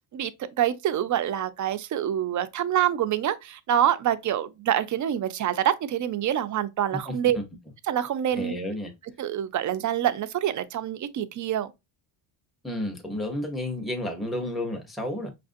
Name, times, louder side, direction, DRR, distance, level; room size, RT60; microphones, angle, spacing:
voice 1, 0.6-7.4 7.9-8.5 9.2-11.7, right 10 dB, 40° right, 0.5 m, -26 dB
voice 2, 7.1-7.4 8.3-8.9 12.6-15.3, left 1 dB, ahead, 0.8 m, -31 dB
5.9 x 2.5 x 2.5 m
cardioid pair, 115°, 49 cm